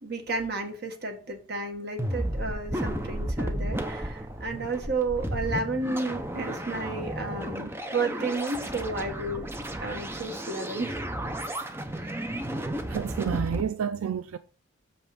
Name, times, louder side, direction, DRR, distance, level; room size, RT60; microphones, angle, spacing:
voice 1, 0.0-9.5 9.8-11.0 11.9-12.2, right 3 dB, 50° right, 1.5 m, -32 dB
sound 1, 2.0-13.6, right 1 dB, 10° right, 0.6 m, -33 dB
voice 2, 12.9-14.4, right 7 dB, 80° right, 0.4 m, -30 dB
6.7 x 5.4 x 4.8 m
head